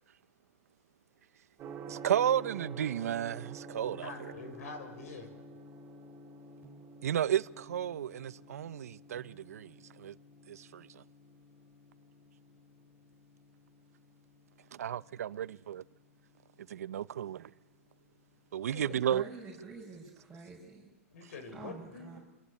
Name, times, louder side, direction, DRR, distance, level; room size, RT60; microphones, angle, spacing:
Gong, 1.6-19.5, right 3 dB, 20° right, 4.6 m, -51 dB
voice 1, 1.9-4.1 7.0-10.1 10.5-10.9 14.7-15.8 16.7-17.5 18.5-19.2, right 10 dB, 80° right, 0.9 m, -33 dB
voice 2, 3.8-5.3 18.6-19.0 21.1-22.2, left 3 dB, 75° left, 7.0 m, -45 dB
voice 3, 18.8-20.9 21.5-22.2, right 4 dB, ahead, 6.0 m, -47 dB
26.5 x 25.5 x 8.6 m
hypercardioid pair, 145°, 8 cm